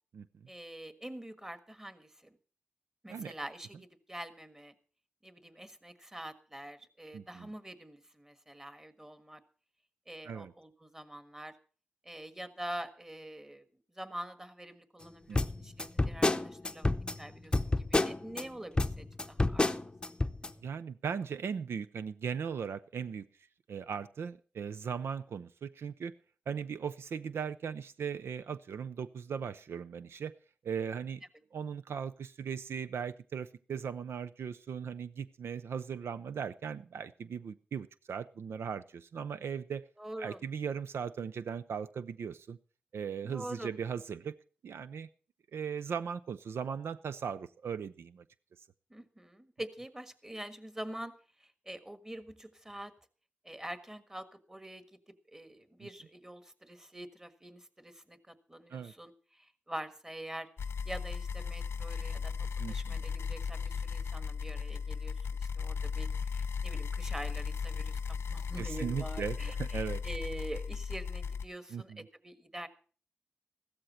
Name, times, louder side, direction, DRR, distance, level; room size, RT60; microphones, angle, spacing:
voice 1, 0.5-2.4 3.0-4.7 5.2-9.4 10.1-11.6 12.0-13.6 13.9-16.9 17.2-19.7 20.0-20.4 40.0-40.4 43.2-43.7 48.9-51.1 51.4-52.9 53.4-54.8 55.3-60.5 60.8-72.7, right 1 dB, 15° right, 10 dB, 1.5 m, -45 dB
voice 2, 7.1-7.5 10.2-10.5 15.3-15.4 20.6-23.2 23.7-26.1 26.5-30.3 30.6-31.2 31.5-39.8 40.2-42.6 42.9-44.4 44.6-45.1 45.5-48.2 55.8-55.9 58.7-58.9 62.6-63.0 68.6-70.0 71.7-72.0, right 7 dB, 80° right, 13 dB, 0.5 m, -38 dB
sound 1, 15.3-18.4 18.8-20.5, left 2 dB, 20° left, 0.7 m, -29 dB
sound 2, 60.6-71.5, left 6 dB, 80° left, 0.7 m, -36 dB
15.0 x 13.0 x 4.3 m, 0.40 s
cardioid pair, 75°, 4 cm